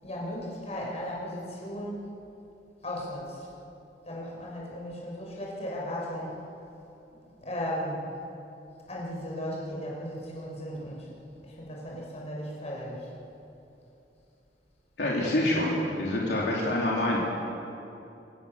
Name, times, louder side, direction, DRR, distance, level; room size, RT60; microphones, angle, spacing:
voice 1, 0.0-2.1 2.8-3.5 4.0-6.4 7.4-8.0 8.9-11.1 11.4-13.1, equal, 40° left, -3 dB, 5.8 m, -36 dB
voice 2, 15.0-17.2, left 1 dB, 70° left, -4 dB, 3.4 m, -26 dB
25.5 x 16.5 x 7.1 m, 2.8 s
head